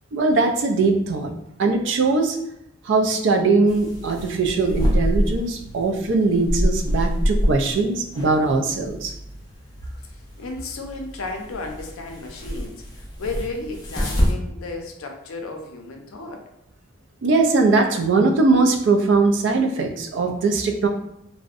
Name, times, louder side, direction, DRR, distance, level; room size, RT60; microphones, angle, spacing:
voice 1, 0.1-1.3 1.6-2.4 2.9-9.1 17.2-20.9, right 3 dB, 60° right, 4 dB, 0.3 m, -20 dB
sound 1, 3.7-14.3, equal, 20° left, 0.4 m, -26 dB
voice 2, 10.0-16.5, left 3 dB, 85° left, 3 dB, 0.5 m, -34 dB
2.6 x 2.1 x 2.4 m, 0.81 s
head